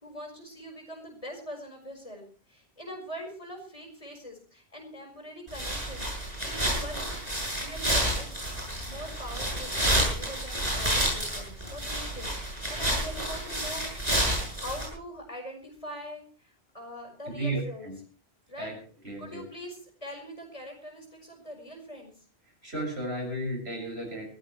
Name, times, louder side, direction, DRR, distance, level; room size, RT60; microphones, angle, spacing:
voice 1, 0.0-7.1 7.6-8.4 8.9-17.9 18.5-18.7 19.2-22.1, equal, 30° left, 2 dB, 5.3 m, -43 dB
sound 1, 5.5-14.9, right 1 dB, 40° right, 7.6 m, -29 dB
voice 2, 17.3-18.0 18.6-18.8 19.0-19.4 22.6-24.3, right 1 dB, 75° right, 2 dB, 7.1 m, -33 dB
21.5 x 16.0 x 3.2 m, 0.39 s
omnidirectional pair, 1.1 m